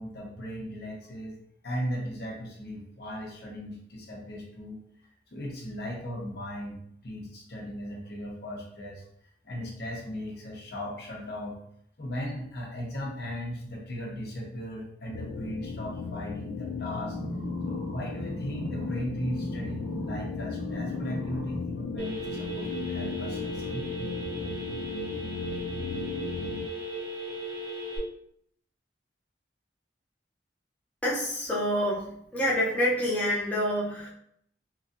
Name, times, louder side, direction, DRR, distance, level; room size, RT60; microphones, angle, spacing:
voice 1, 0.0-1.4 1.6-4.8 5.3-9.0 9.4-11.6 12.0-17.2 17.6-23.9, equal, 60° left, -2 dB, 0.8 m, -37 dB
sound 1, 15.1-26.7, left 5 dB, 80° left, 0.3 m, -36 dB
sound 2, 17.1-20.3 20.6-21.6 22.2-22.3, right 1 dB, 40° right, 0.5 m, -38 dB
Telephone, 22.0-28.0, equal, 75° right, 1.1 m, -36 dB
voice 2, 31.0-32.0 32.3-34.1, equal, 10° left, -7 dB, 0.6 m, -27 dB
2.9 x 2.6 x 2.6 m, 0.68 s
head